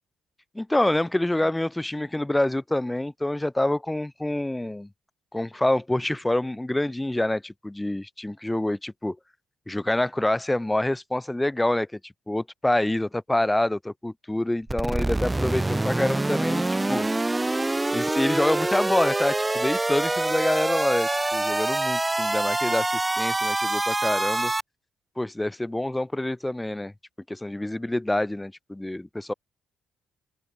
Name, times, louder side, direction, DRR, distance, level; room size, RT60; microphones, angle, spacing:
voice 1, 0.6-4.9 5.3-9.2 9.7-17.1 17.9-24.5 25.2-26.9 27.3-29.3, left 1 dB, 10° left, 5.2 m, -26 dB
sound 1, 14.7-24.6, right 2 dB, 15° right, 1.5 m, -25 dB
open air
cardioid pair, 90°, 0 cm